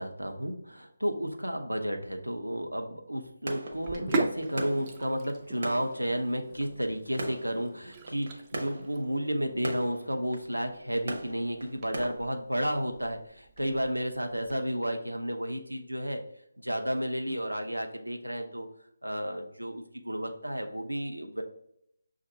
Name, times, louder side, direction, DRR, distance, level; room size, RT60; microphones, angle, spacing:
voice 1, 0.0-16.2 16.6-18.7 19.0-21.4, equal, 85° right, 4 dB, 0.7 m, -32 dB
sound 1, 3.5-12.1, right 1 dB, 45° right, 0.7 m, -41 dB
Sink (filling or washing), 3.7-14.6, right 3 dB, 20° right, 0.3 m, -40 dB
6.2 x 2.4 x 2.8 m, 0.73 s
figure-of-eight pair, 155°, 0 cm